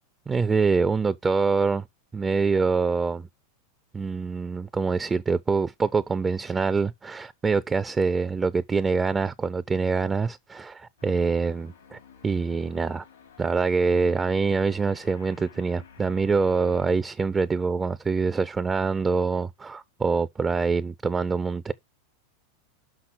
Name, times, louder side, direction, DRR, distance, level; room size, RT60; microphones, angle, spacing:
voice 1, 0.3-1.8 2.1-3.3 3.9-13.0 13.4-21.7, right 4 dB, 20° right, 0.4 m, -25 dB
sound 1, 11.0-16.9, left 6 dB, 90° left, 3.7 m, -52 dB
6.0 x 5.7 x 6.0 m
hypercardioid pair, 100°, 0 cm